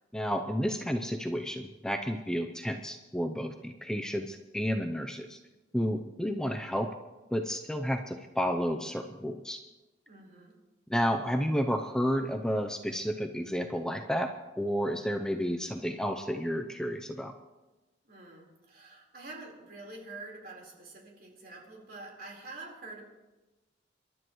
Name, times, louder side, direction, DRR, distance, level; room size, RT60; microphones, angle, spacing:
voice 1, 0.1-5.4 5.7-6.9 7.3-9.6 10.9-17.3, equal, 5° left, 4 dB, 0.6 m, -31 dB
voice 2, 10.1-10.6 18.0-23.0, right 2 dB, 55° right, -2 dB, 4.2 m, -46 dB
27.5 x 12.0 x 3.1 m, 1.1 s
head